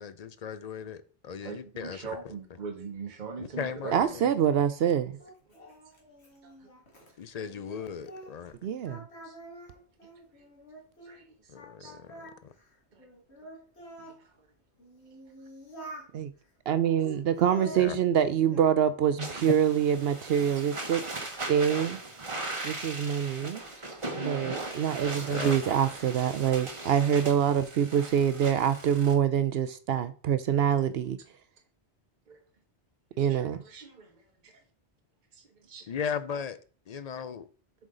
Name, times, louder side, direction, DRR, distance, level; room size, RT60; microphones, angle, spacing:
voice 1, 0.0-2.3 3.4-4.3 7.2-8.6 11.5-12.5 17.7-18.0 25.3-25.5 35.9-36.6 36.9-37.5, left 7 dB, 50° left, 0.5 m, -37 dB
voice 2, 1.4-3.9 6.4-6.5 9.2-9.3 11.1-11.3 11.8-11.9 13.0-13.1 19.2-19.3 23.6-24.1 25.2-25.3 32.3-32.4 33.2-34.5 35.3-36.0, right 5 dB, 45° right, 1.1 m, -42 dB
voice 3, 3.9-5.1 8.6-9.1 16.1-16.3 16.7-21.0 21.5-22.0 22.6-23.6 24.1-31.2 33.2-33.6, right 9 dB, 65° right, 0.7 m, -25 dB
Singing, 4.0-8.5 8.8-11.2 11.6-14.2 14.8-16.1 16.7-18.7 19.1-19.7, right 2 dB, 70° left, 2.3 m, -47 dB
sound 1, 19.2-29.1, right 2 dB, 30° right, 1.2 m, -38 dB
7.5 x 4.9 x 3.8 m
omnidirectional pair, 1.2 m